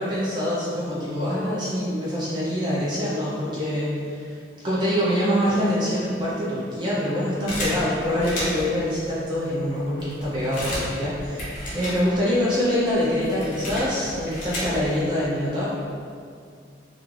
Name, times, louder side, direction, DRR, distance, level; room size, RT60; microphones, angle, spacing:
voice 1, 0.0-4.4 4.6-15.7, equal, 25° right, -8 dB, 0.4 m, -25 dB
sound 1, 7.5-8.8 9.4-9.5 9.8-12.4 12.7-15.1, equal, 45° left, 0.7 m, -32 dB
3.0 x 2.4 x 2.3 m, 2.2 s
head